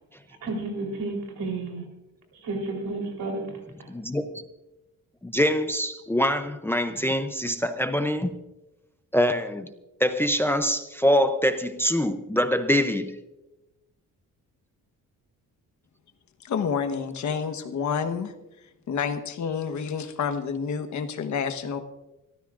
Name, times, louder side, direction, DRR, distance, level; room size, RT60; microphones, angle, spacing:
voice 1, 0.3-1.8 2.4-3.9, right 2 dB, 90° right, 3.8 m, -32 dB
voice 2, 3.9-4.2 5.2-5.9 6.1-8.3 9.1-9.7 10.0-13.1, equal, 5° left, 0.5 m, -24 dB
voice 3, 16.4-18.3 18.9-21.8, left 6 dB, 55° left, 1.2 m, -29 dB
25.0 x 14.0 x 2.5 m
cardioid pair, 160°, 34 cm